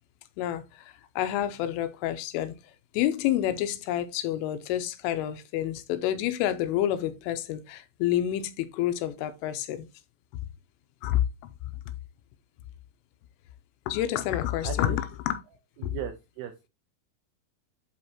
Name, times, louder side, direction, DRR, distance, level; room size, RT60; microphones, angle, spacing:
voice 1, 0.4-2.6 2.9-9.9 11.0-11.3 13.9-15.4 15.8-15.9, left 12 dB, 85° left, 3.3 m, -28 dB
voice 2, 14.6-15.0 15.8-16.7, right 10 dB, 85° right, 2.3 m, -37 dB
8.1 x 5.4 x 2.9 m
omnidirectional pair, 5.7 m